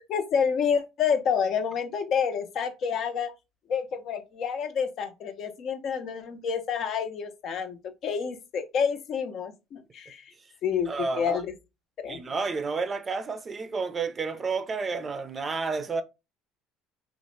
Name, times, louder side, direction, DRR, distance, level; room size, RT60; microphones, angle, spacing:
voice 1, 0.0-3.3 3.7-7.8 8.0-10.3 10.6-10.9 11.2-11.5 12.0-12.2, left 7 dB, 60° left, 0.5 m, -28 dB
voice 2, 10.9-11.4 12.1-16.0, right 4 dB, 35° right, 0.4 m, -30 dB
3.0 x 2.0 x 3.1 m
supercardioid pair, 75°, 0 cm